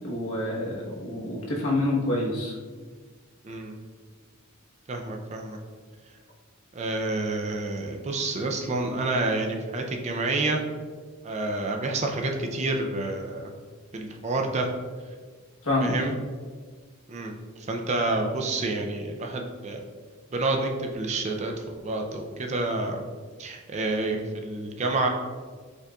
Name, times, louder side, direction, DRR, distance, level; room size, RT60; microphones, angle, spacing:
voice 1, 0.0-2.5 15.6-16.0, left 1 dB, 80° left, -3 dB, 1.1 m, -27 dB
voice 2, 3.4-3.8 4.9-5.6 6.7-10.6 11.2-13.5 13.9-14.7 15.8-16.1 17.1-17.3 17.6-19.8 20.3-21.5 21.8-23.0 23.4-25.1, right 2 dB, 30° right, 3 dB, 0.4 m, -28 dB
5.3 x 3.8 x 2.3 m, 1.5 s
head